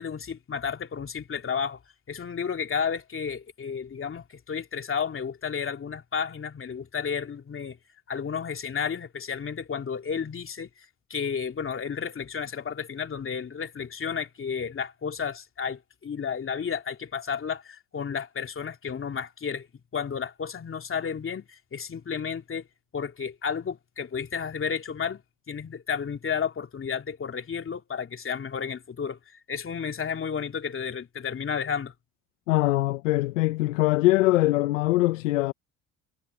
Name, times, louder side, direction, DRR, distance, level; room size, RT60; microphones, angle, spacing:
voice 1, 0.0-1.8 2.1-7.8 8.1-19.7 19.9-22.7 22.9-25.2 25.5-31.9, left 6 dB, 35° left, 2.8 m, -32 dB
voice 2, 32.5-35.5, left 18 dB, 90° left, 0.9 m, -22 dB
hypercardioid pair, 70°, 37 cm